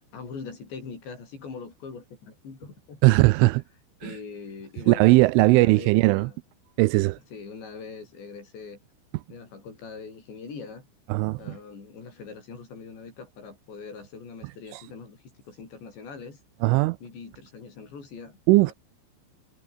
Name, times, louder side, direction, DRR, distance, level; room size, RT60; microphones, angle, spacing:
voice 1, 0.1-3.5 4.0-5.1 5.4-6.4 7.3-8.8 9.3-10.9 11.4-16.4 17.0-18.7, left 5 dB, 60° left, 9.1 m, -42 dB
voice 2, 3.0-3.6 4.0-4.1 4.9-6.3 6.8-7.2 11.1-11.6 16.6-17.0 18.5-18.7, right 22 dB, 85° right, 3.0 m, -19 dB
omnidirectional pair, 5.7 m